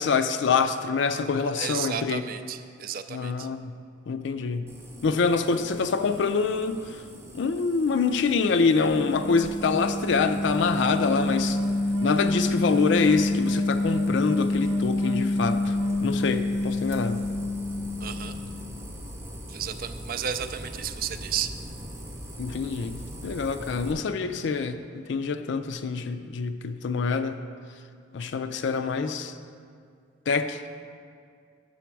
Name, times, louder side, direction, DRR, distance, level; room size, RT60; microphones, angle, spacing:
voice 1, 0.0-2.2 3.1-3.7 4.1-4.7 5.0-7.0 7.3-11.6 12.0-17.2 22.4-27.4 28.1-29.3 30.3-30.7, left 5 dB, 65° left, 9 dB, 0.4 m, -26 dB
voice 2, 1.6-3.5 18.0-18.3 19.5-21.5, right 8 dB, 50° right, 10 dB, 0.3 m, -33 dB
sound 1, 4.7-23.9, equal, 15° right, 0.7 m, -42 dB
sound 2, 8.5-18.6, left 2 dB, 75° right, 0.7 m, -27 dB
7.1 x 6.8 x 4.6 m, 2.2 s
head